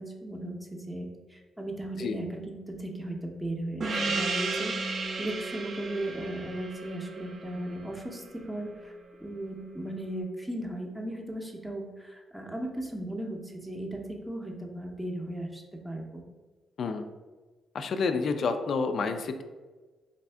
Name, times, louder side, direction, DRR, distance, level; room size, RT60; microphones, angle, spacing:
voice 1, 0.0-8.9 9.2-16.2, right 1 dB, 5° right, 1 dB, 0.6 m, -37 dB
Gong, 3.8-8.8, right 3 dB, 50° right, 0.5 m, -34 dB
voice 2, 17.7-19.4, left 4 dB, 60° left, 8 dB, 0.3 m, -29 dB
3.4 x 2.6 x 3.3 m, 1.3 s
cardioid pair, 90°, 0 cm